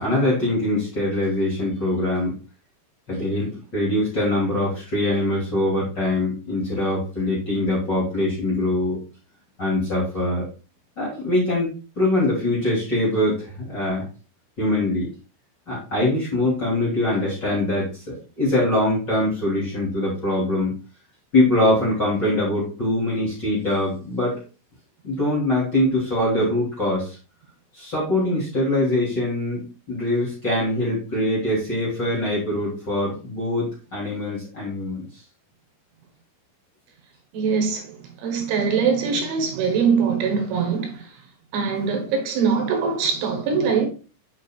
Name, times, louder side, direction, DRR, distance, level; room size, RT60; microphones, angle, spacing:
voice 1, 0.0-2.3 3.1-9.0 9.6-10.4 11.0-11.7 12.0-14.1 14.6-15.1 15.7-20.7 21.3-24.3 25.0-27.2 27.7-35.0, left 1 dB, 30° left, 2.7 m, -23 dB
voice 2, 37.3-41.1 41.5-43.9, right 5 dB, 75° right, 3.4 m, -22 dB
9.1 x 6.0 x 2.4 m
omnidirectional pair, 5.7 m